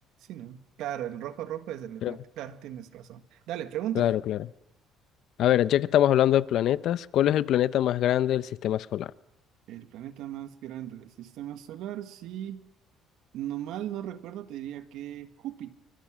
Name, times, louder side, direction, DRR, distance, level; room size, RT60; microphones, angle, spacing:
voice 1, 0.3-4.1 9.7-12.7 13.3-15.8, right 11 dB, 75° right, 1.6 m, -37 dB
voice 2, 4.0-4.4 5.4-9.1, left 12 dB, 60° left, 0.7 m, -23 dB
26.0 x 24.0 x 6.3 m
cardioid pair, 135°, 0 cm